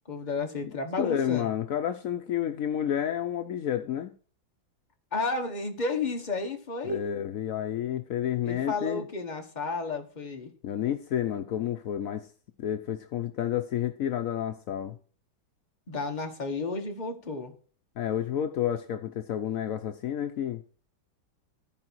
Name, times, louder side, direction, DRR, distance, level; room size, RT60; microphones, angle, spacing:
voice 1, 0.1-1.5 5.1-7.0 8.4-10.5 15.9-17.5, left 3 dB, 25° left, 1.2 m, -32 dB
voice 2, 1.0-4.1 6.8-9.1 10.6-12.3 12.6-15.0 18.0-20.6, left 10 dB, 75° left, 0.7 m, -30 dB
13.5 x 4.9 x 4.6 m
omnidirectional pair, 2.2 m